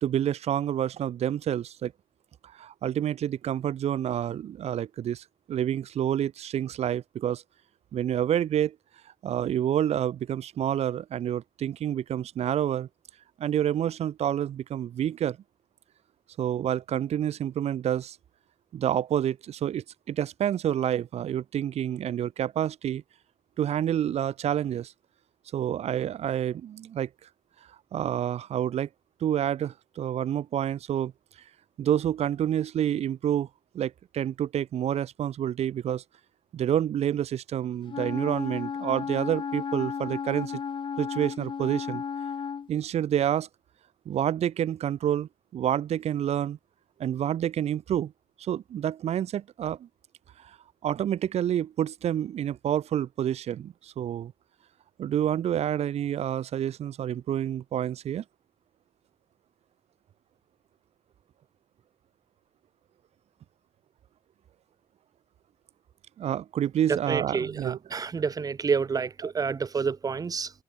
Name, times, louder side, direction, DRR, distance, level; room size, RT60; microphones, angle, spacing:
voice 1, 0.0-1.9 2.5-7.4 7.9-8.8 9.2-12.9 13.4-15.4 16.4-18.2 18.7-23.0 23.6-24.9 25.5-27.1 27.9-28.9 29.2-31.1 31.8-33.5 33.7-36.0 36.5-40.6 41.0-42.0 42.7-43.5 44.1-46.6 47.0-48.1 48.4-49.9 50.4-50.6 50.8-54.3 55.0-58.2 66.2-67.8 69.2-69.3, right 10 dB, 75° right, 2.0 m, -28 dB
Wind instrument woodwind instrument, 37.9-42.7, left 7 dB, 50° left, 2.7 m, -34 dB
voice 2, 66.9-70.5, right 5 dB, 35° right, 0.8 m, -29 dB
cardioid pair, 115°, 11 cm